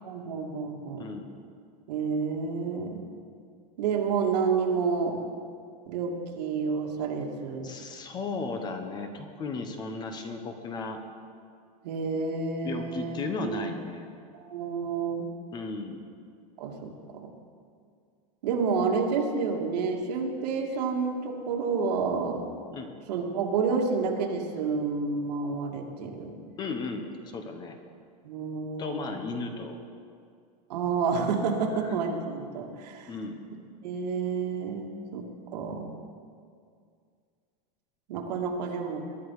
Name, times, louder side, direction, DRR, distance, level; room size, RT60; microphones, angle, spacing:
voice 1, 0.0-1.1 1.9-3.0 3.8-5.2 5.9-7.7 11.8-13.7 14.3-15.3 16.6-17.3 18.4-22.4 23.1-26.3 28.2-29.2 30.7-33.1 33.8-35.9 38.1-39.0, right 5 dB, 85° right, 1 dB, 2.4 m, -29 dB
voice 2, 1.0-1.3 7.6-11.0 12.6-14.1 15.5-16.1 22.7-22.9 26.6-27.8 28.8-29.8 31.7-31.9 33.1-33.4, left 3 dB, 20° left, 6 dB, 1.1 m, -35 dB
21.5 x 11.0 x 4.9 m, 2.2 s
supercardioid pair, 170°, 20 cm